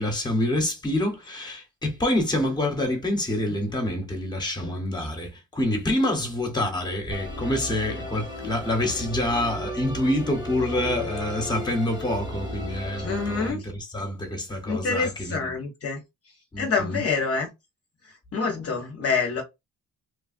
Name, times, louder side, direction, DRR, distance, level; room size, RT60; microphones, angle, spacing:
voice 1, 0.0-15.5 16.5-17.0, left 1 dB, 10° left, 0.9 m, -27 dB
voice 2, 4.6-5.1 13.0-13.6 14.7-16.0 16.6-17.5 18.3-19.4, left 4 dB, 40° left, 0.7 m, -27 dB
Musical instrument, 7.1-13.5, equal, 15° right, 0.9 m, -35 dB
3.1 x 2.2 x 2.5 m
cardioid pair, 140°, 35 cm